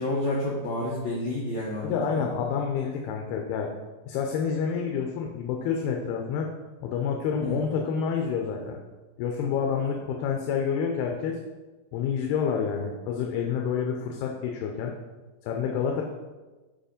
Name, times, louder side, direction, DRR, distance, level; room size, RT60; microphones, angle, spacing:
voice 1, 0.0-2.3 7.4-7.6, left 1 dB, 65° left, -5 dB, 1.9 m, -29 dB
voice 2, 1.8-3.7 4.0-6.5 6.8-8.8 9.2-11.4 11.9-15.0 15.4-16.0, left 6 dB, 90° left, 2 dB, 2.7 m, -28 dB
7.8 x 4.9 x 5.1 m, 1.2 s
omnidirectional pair, 4.4 m